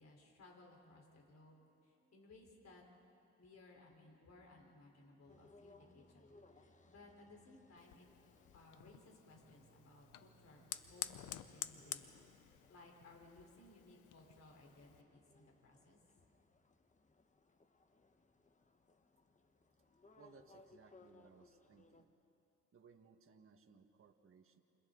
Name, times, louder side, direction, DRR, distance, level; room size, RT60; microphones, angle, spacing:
voice 1, 0.0-2.8 3.4-8.1 8.5-12.3 12.7-16.0, left 2 dB, 60° left, 0 dB, 4.2 m, -62 dB
sound 1, 1.5-13.1, right 4 dB, 5° right, 5.2 m, -75 dB
sound 2, 5.3-22.0, left 3 dB, 25° left, 1.3 m, -68 dB
Fire, 7.8-15.0, left 12 dB, 85° left, 0.8 m, -51 dB
voice 2, 20.2-22.1 22.7-24.6, right 6 dB, 45° right, 4 dB, 1.6 m, -64 dB
29.0 x 28.5 x 4.0 m, 2.8 s
cardioid pair, 90°, 30 cm